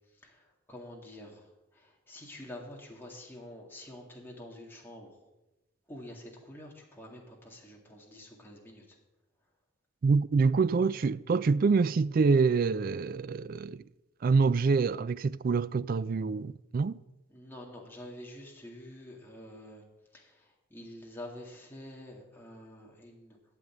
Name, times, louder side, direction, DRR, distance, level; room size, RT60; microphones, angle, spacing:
voice 1, 0.2-1.4 1.7-5.1 5.9-8.8 17.3-19.8 20.1-20.4 20.7-23.4, left 1 dB, 10° left, 2.1 m, -47 dB
voice 2, 10.0-13.8 14.2-17.0, right 4 dB, 50° right, 0.3 m, -26 dB
13.0 x 5.3 x 9.1 m
head